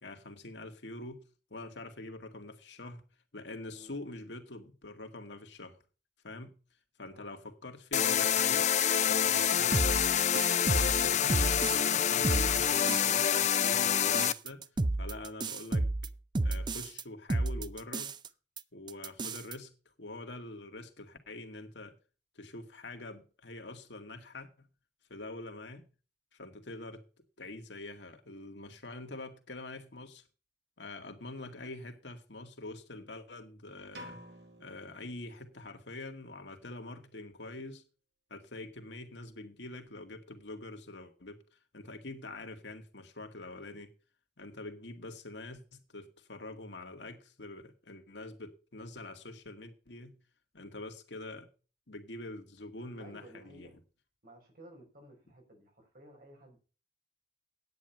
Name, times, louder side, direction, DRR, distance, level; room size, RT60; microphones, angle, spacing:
voice 1, 0.0-3.0 3.3-5.8 6.2-6.6 7.0-8.7 9.0-10.0 10.6-14.7 15.0-15.9 16.4-18.2 18.7-19.7 20.0-22.0 22.4-24.7 25.1-25.9 26.3-27.0 27.4-30.2 30.8-34.2 34.6-37.8 38.3-41.4 41.7-43.9 44.4-50.2 50.5-51.5 51.9-53.7, left 2 dB, 75° left, 1.9 m, -45 dB
sound 1, 7.9-14.3, left 9 dB, 40° left, 0.5 m, -27 dB
sound 2, 9.7-12.0 12.2-13.1 13.4-17.0 17.3-18.3 18.6-18.7 18.9-19.5, right 2 dB, 25° right, 0.5 m, -31 dB
sound 3, 33.9-35.8, equal, 70° right, 2.2 m, -51 dB
voice 2, 52.9-53.8 54.2-56.6, right 1 dB, 55° right, 5.0 m, -55 dB
9.9 x 9.2 x 5.5 m
head